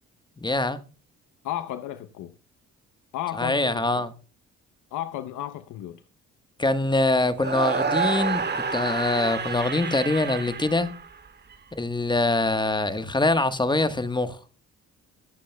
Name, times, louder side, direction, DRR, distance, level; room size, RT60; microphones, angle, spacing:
voice 1, 0.4-0.8 3.4-4.1 6.6-10.9 11.8-14.4, left 2 dB, 15° left, 1.2 m, -24 dB
voice 2, 1.4-2.3 3.1-4.0 4.9-6.0, left 12 dB, 80° left, 0.8 m, -33 dB
sound 1, 7.4-11.5, right 5 dB, 35° right, 2.0 m, -29 dB
21.0 x 8.4 x 2.2 m
cardioid pair, 90°, 30 cm